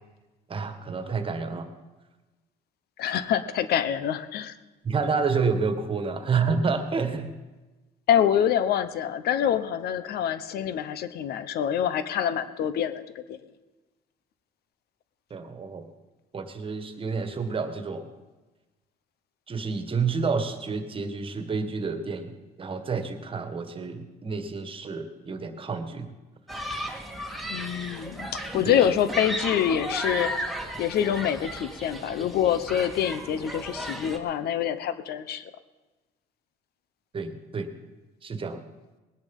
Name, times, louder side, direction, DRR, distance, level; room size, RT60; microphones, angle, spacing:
voice 1, 0.5-1.7 4.8-7.3 15.3-15.9 16.3-18.1 19.5-26.1 28.6-28.8 37.1-37.7 38.2-38.6, right 5 dB, 30° right, 9 dB, 1.6 m, -29 dB
voice 2, 3.0-4.6 8.1-13.4 27.5-30.5 30.8-35.4, left 9 dB, 70° left, 13 dB, 1.0 m, -26 dB
Human group actions, 26.5-34.2, right 1 dB, ahead, 1.9 m, -35 dB
19.5 x 10.5 x 5.5 m, 1.2 s
cardioid pair, 110°, 17 cm